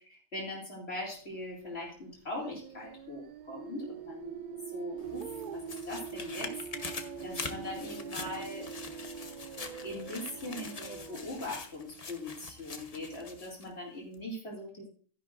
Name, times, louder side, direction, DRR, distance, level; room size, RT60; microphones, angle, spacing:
voice 1, 0.3-5.6 5.9-8.7 9.8-14.9, left 1 dB, 50° left, -2 dB, 2.9 m, -41 dB
sound 1, 2.3-11.5, right 6 dB, 85° right, 0.4 m, -43 dB
sound 2, 5.0-13.7 14.1-14.2, left 4 dB, 35° left, 0.9 m, -44 dB
12.0 x 10.5 x 2.5 m, 0.43 s
omnidirectional pair, 1.4 m